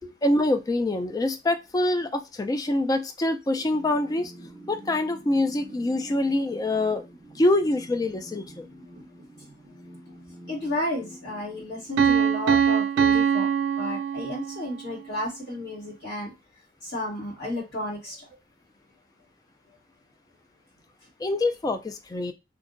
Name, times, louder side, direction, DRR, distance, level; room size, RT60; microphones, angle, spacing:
voice 1, 0.2-4.3 4.7-7.0 7.4-8.7 21.2-22.3, left 1 dB, 20° left, 8 dB, 0.3 m, -25 dB
sound 1, 3.5-12.5, right 1 dB, 40° right, 0.6 m, -47 dB
voice 2, 10.5-13.5 13.8-16.3 16.8-18.3, left 1 dB, 60° left, -5 dB, 1.9 m, -32 dB
Piano, 12.0-14.7, right 7 dB, 85° right, 0.4 m, -22 dB
2.8 x 2.5 x 2.5 m, 0.25 s
head